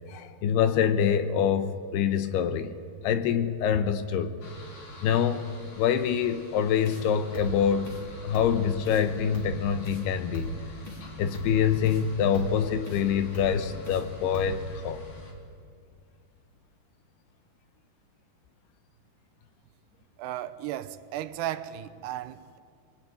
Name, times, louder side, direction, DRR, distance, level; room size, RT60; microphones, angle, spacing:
voice 1, 0.1-2.7 3.0-4.4 5.0-5.5 5.8-7.9 8.2-10.5 11.2-15.0, left 8 dB, 80° left, 10 dB, 3.0 m, -25 dB
sound 1, 4.4-15.3, left 1 dB, 55° left, 4.5 m, -46 dB
sound 2, 6.8-7.0 7.3-7.6 7.8-8.0 8.3-8.6 8.8-9.0 9.3-9.6 9.8-10.0 10.3-10.6 10.8-11.0 11.3-11.6 11.8-12.0 12.3-12.6 12.8-13.0 13.3-13.6 13.8-14.0 14.3-14.6, equal, 30° left, 3.6 m, -37 dB
voice 2, 20.2-22.6, right 12 dB, 80° right, 12 dB, 2.9 m, -35 dB
24.0 x 22.5 x 9.3 m, 2.3 s
omnidirectional pair, 4.8 m